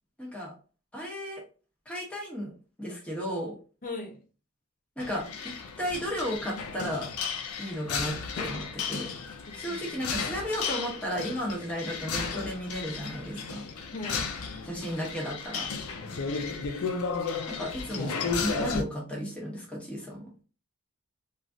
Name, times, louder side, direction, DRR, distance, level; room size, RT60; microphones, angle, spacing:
voice 1, 0.2-0.5 0.9-1.4 1.9-2.5 2.8-3.5 5.0-7.1 7.6-9.1 9.5-13.6 14.6-15.7 17.5-18.1 18.4-20.3, equal, 5° left, 0.8 m, -34 dB
voice 2, 3.8-4.2 9.5-10.0 13.9-14.4 16.0-16.8, left 2 dB, 35° left, 0.7 m, -41 dB
sound 1, 5.0-18.8, left 5 dB, 80° left, 0.5 m, -34 dB
3.1 x 2.4 x 2.5 m
head